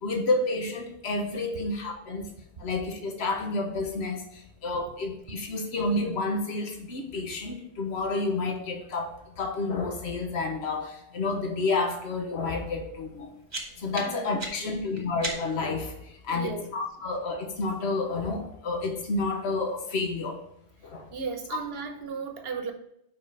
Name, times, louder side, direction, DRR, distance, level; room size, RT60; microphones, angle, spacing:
voice 1, 0.0-2.2 2.6-13.3 13.8-16.0 16.2-20.4 20.8-21.1 21.5-21.6, left 3 dB, 75° left, 3 dB, 1.3 m, -30 dB
sound 1, 13.1-15.8, right 2 dB, 40° right, 1.4 m, -38 dB
voice 2, 13.7-14.8 16.3-16.7 20.8-22.7, right 5 dB, 65° right, 6 dB, 1.1 m, -36 dB
5.3 x 4.9 x 5.3 m, 0.75 s
omnidirectional pair, 1.1 m